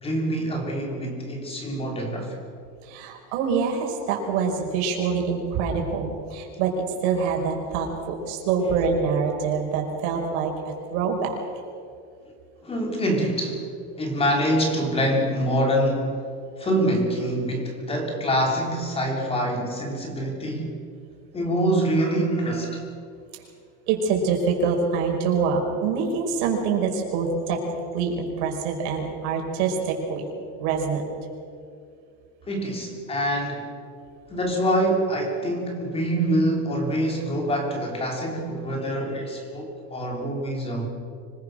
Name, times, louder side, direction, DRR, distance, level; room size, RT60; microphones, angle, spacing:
voice 1, 0.0-2.4 12.6-13.7 14.0-16.2 16.6-20.7 21.3-22.8 32.4-33.8 34.3-40.9, equal, 15° left, 2 dB, 3.1 m, -25 dB
voice 2, 2.8-10.5 10.9-11.3 23.9-27.6 27.9-30.3 30.6-31.0, right 5 dB, 80° right, 1 dB, 5.4 m, -25 dB
25.5 x 21.0 x 6.5 m, 2.4 s
cardioid pair, 170°, 34 cm